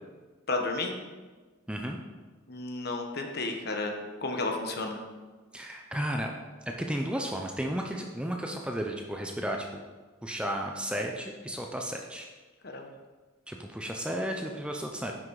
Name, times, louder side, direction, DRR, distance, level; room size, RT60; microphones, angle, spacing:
voice 1, 0.5-0.9 2.5-3.9 4.2-5.0 12.6-12.9, left 2 dB, 50° left, 3 dB, 1.2 m, -32 dB
voice 2, 1.7-2.0 5.5-6.3 6.7-9.8 10.2-12.3 13.5-15.1, equal, 5° right, 2 dB, 0.5 m, -33 dB
9.9 x 6.1 x 4.8 m, 1.4 s
head